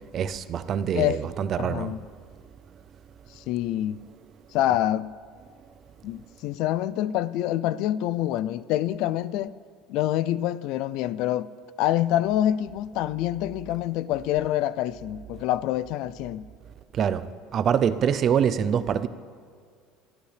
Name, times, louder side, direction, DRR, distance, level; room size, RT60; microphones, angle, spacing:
voice 1, 0.1-1.9 16.9-17.2 17.5-19.1, right 8 dB, 35° right, 0.5 m, -24 dB
voice 2, 0.9-1.3 1.6-2.0 3.4-4.0 4.5-5.1 6.0-9.5 9.9-11.5 11.8-16.4, left 13 dB, 60° left, 0.3 m, -26 dB
23.5 x 13.0 x 3.4 m
cardioid pair, 160°, 0 cm